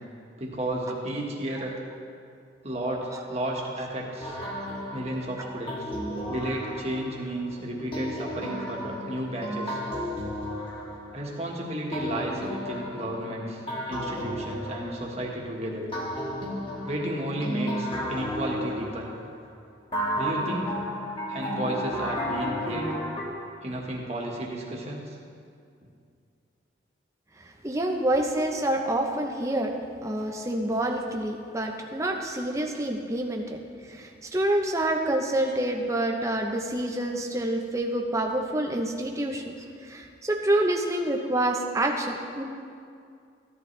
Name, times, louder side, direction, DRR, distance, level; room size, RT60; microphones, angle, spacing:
voice 1, 0.4-1.8 2.6-4.4 4.9-5.9 6.3-9.8 11.1-13.6 13.9-15.9 16.8-19.1 20.1-20.8 21.3-22.9 23.6-25.1, right 1 dB, 35° right, -2 dB, 1.6 m, -32 dB
sound 1, 4.2-7.3 7.9-11.5 11.9-15.4 15.9-19.4 19.9-23.2, equal, 25° left, 1.6 m, -33 dB
voice 2, 27.4-29.8 30.0-33.6 33.8-42.4, right 1 dB, 15° right, 2 dB, 0.8 m, -27 dB
15.0 x 11.0 x 3.3 m, 2.4 s
head